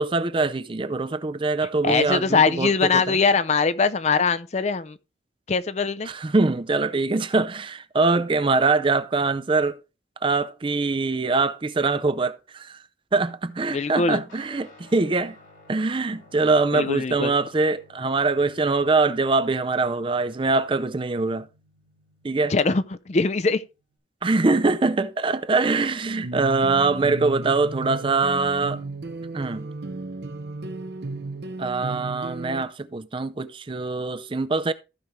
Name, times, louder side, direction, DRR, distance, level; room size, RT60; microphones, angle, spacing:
voice 1, 0.0-3.2 6.0-9.8 10.2-12.8 13.1-15.4 15.7-21.5 22.2-22.5 24.2-28.8 29.3-29.7 31.6-34.7, right 3 dB, 25° right, 0.4 m, -23 dB
voice 2, 1.8-5.0 5.5-6.1 13.7-14.2 16.7-17.3 22.5-23.6, left 4 dB, 35° left, 0.5 m, -22 dB
Guitar, 14.3-24.0, left 2 dB, 90° left, 3.9 m, -55 dB
sound 1, 26.2-32.6, right 2 dB, 60° right, 0.7 m, -34 dB
15.0 x 5.1 x 3.2 m
head